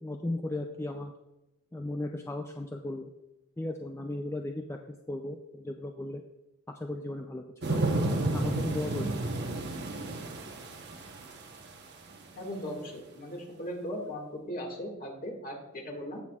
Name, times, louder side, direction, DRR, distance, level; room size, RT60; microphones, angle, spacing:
voice 1, 0.0-1.1 1.7-3.1 3.6-4.8 5.1-6.2 6.7-7.4 7.7-7.8 8.3-9.1, left 1 dB, 15° left, 3 dB, 0.4 m, -36 dB
sound 1, 7.6-11.6 12.1-12.2, right 2 dB, 55° right, 1.0 m, -31 dB
voice 2, 12.4-16.2, equal, 45° left, 0 dB, 1.9 m, -38 dB
16.5 x 6.0 x 2.4 m, 0.95 s
head